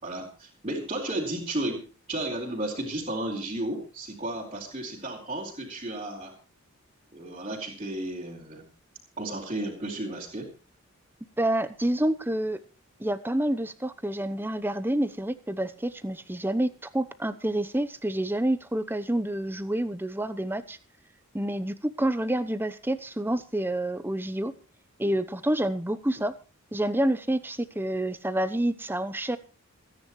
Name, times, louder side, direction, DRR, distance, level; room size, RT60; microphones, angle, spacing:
voice 1, 0.0-6.3 7.1-8.7 9.2-10.5, right 1 dB, 25° right, -5 dB, 4.0 m, -33 dB
voice 2, 11.4-12.6 13.0-20.8 21.3-24.5 25.0-26.3 26.7-29.4, right 1 dB, 10° right, 12 dB, 0.8 m, -28 dB
27.5 x 10.0 x 3.2 m, 0.32 s
head